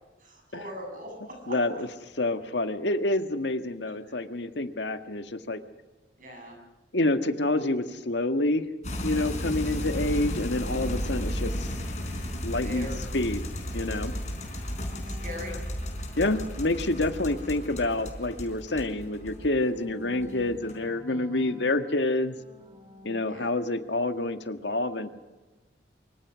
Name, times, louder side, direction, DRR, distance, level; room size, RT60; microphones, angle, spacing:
voice 1, 0.2-1.5 4.1-4.2 6.2-6.6 12.6-13.0 14.4-14.7 15.1-15.5 21.1-21.5 23.3-23.5, left 1 dB, 45° right, 2 dB, 7.9 m, -41 dB
voice 2, 1.5-5.6 6.9-8.6 9.0-11.7 12.4-13.4 13.7-14.1 16.2-22.4 23.0-25.1, left 2 dB, 80° left, 8 dB, 1.7 m, -28 dB
sound 1, 8.8-19.8 20.1-20.8, equal, 40° left, 4.6 m, -34 dB
sound 2, 9.7-12.6 13.3-18.1 18.4-23.2, left 1 dB, 25° right, 3.8 m, -51 dB
24.5 x 24.0 x 6.3 m, 1.2 s
head